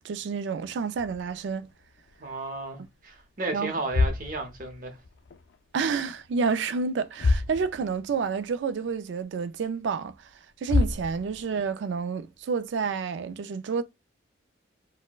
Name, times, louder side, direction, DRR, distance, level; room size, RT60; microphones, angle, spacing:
voice 1, 0.0-1.7 3.5-3.7 5.7-10.1 10.6-13.8, right 5 dB, 70° right, 0.3 m, -29 dB
sound 1, 1.0-2.6 2.9-3.2 3.7-5.6 5.8-6.5 6.8-6.9 7.1-8.2 8.5-8.6 9.2-9.3 10.3-10.4 10.7-11.7, left 3 dB, 60° left, 0.4 m, -29 dB
voice 2, 2.2-5.0, right 2 dB, 45° right, 0.7 m, -34 dB
4.3 x 2.1 x 2.3 m
head